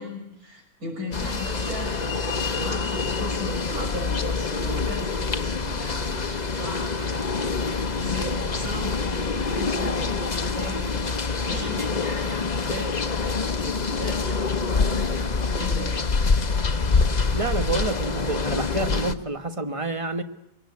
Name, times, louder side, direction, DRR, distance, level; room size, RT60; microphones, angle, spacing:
voice 1, 0.0-2.2 2.5-16.0, left 1 dB, 80° right, 7.0 m, -36 dB
sound 1, 1.1-19.1, left 4 dB, 30° left, 1.1 m, -26 dB
voice 2, 17.3-20.2, right 3 dB, 25° right, 1.3 m, -28 dB
24.5 x 22.5 x 9.7 m
omnidirectional pair, 1.5 m